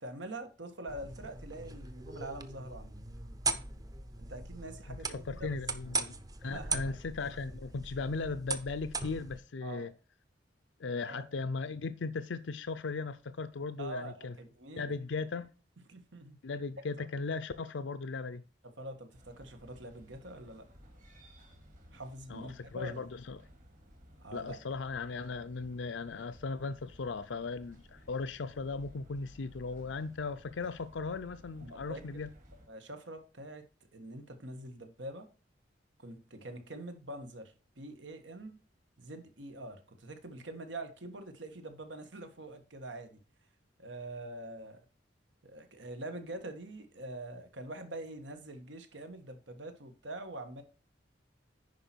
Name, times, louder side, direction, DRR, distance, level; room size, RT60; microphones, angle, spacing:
voice 1, 0.0-2.9 4.2-5.6 6.4-7.0 9.6-9.9 10.9-11.2 13.8-14.9 15.9-16.4 17.0-17.1 18.6-20.7 21.9-23.0 24.2-24.6 31.6-32.1 32.5-33.7 33.9-35.3 36.0-38.6 39.0-43.2 43.8-44.8 45.4-50.6, right 1 dB, 85° right, 1.6 m, -45 dB
sound 1, 0.9-9.4, right 3 dB, 20° right, 0.7 m, -39 dB
voice 2, 4.9-9.9 10.8-14.3 14.8-15.5 16.4-18.4 22.3-23.4 24.3-32.3, left 4 dB, 80° left, 0.5 m, -37 dB
sound 2, 19.1-32.7, equal, 45° right, 2.7 m, -57 dB
10.5 x 4.9 x 4.5 m
head